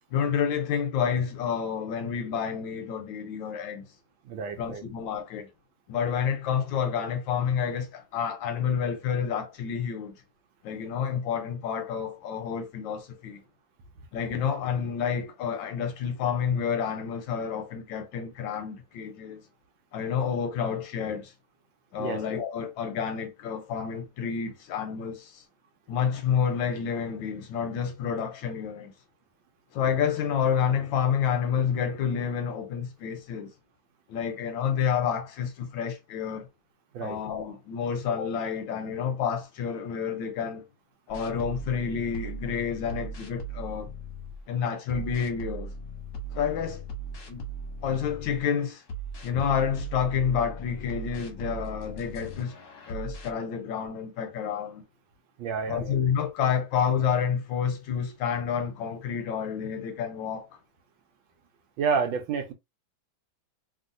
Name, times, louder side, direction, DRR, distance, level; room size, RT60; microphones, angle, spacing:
voice 1, 0.1-3.8 4.6-5.5 5.9-10.2 10.6-13.4 14.1-19.4 19.9-21.3 21.9-25.4 25.9-28.9 29.7-33.5 34.1-36.5 37.0-40.6 41.1-43.9 44.5-45.7 46.3-46.8 47.3-47.4 47.8-48.8 49.2-52.6 52.9-54.8 55.7-60.5, left 7 dB, 75° left, 1.2 m, -29 dB
voice 2, 4.3-4.8 22.0-22.2 36.9-37.2 55.4-56.0 61.8-62.5, right 6 dB, 75° right, 1.3 m, -29 dB
sound 1, 41.1-44.4 44.9-48.4 48.9-53.3, right 2 dB, 50° left, 1.0 m, -38 dB
3.0 x 2.7 x 2.5 m
omnidirectional pair, 2.3 m